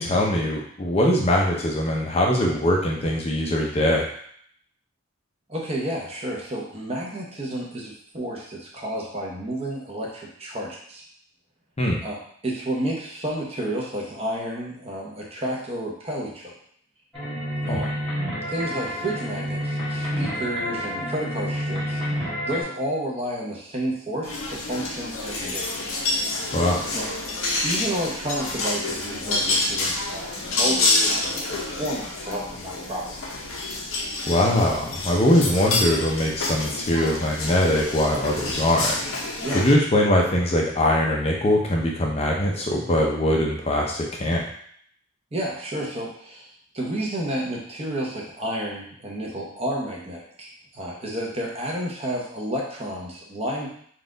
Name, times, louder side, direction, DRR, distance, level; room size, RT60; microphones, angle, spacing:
voice 1, 0.0-4.1 11.8-12.0 17.7-17.8 26.5-26.8 34.3-39.0 39.5-44.4, left 1 dB, 30° left, -1 dB, 0.5 m, -22 dB
voice 2, 5.5-11.0 12.0-16.5 17.6-17.9 18.5-22.0 22.5-25.7 26.9-27.0 27.6-33.0 39.4-39.6 45.3-46.5 46.7-53.7, right 1 dB, 30° right, -2 dB, 0.8 m, -31 dB
sound 1, 17.1-22.6, equal, ahead, 1.3 m, -29 dB
sound 2, 24.2-39.7, left 2 dB, 85° left, 0.8 m, -28 dB
4.1 x 2.4 x 3.8 m, 0.63 s
head